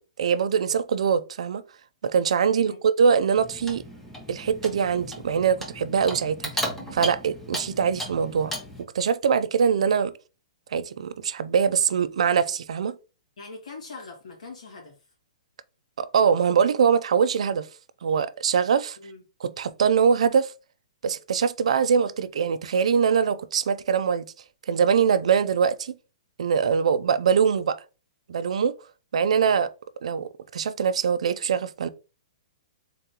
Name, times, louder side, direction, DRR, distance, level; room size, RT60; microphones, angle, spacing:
voice 1, 0.2-1.6 2.0-3.8 4.3-6.5 6.9-8.5 8.8-10.1 10.7-13.0 16.0-17.7 18.0-19.0 19.4-20.5 21.0-24.3 24.7-25.9 26.4-27.8 28.3-28.7 29.1-29.7 30.0-31.9, right 6 dB, 65° right, 0.4 m, -23 dB
voice 2, 2.5-2.8 13.4-15.0 19.0-19.2, left 3 dB, 80° left, 1.9 m, -42 dB
Clock, 3.4-8.8, equal, 5° left, 0.6 m, -35 dB
3.8 x 3.6 x 2.8 m
hypercardioid pair, 175°, 4 cm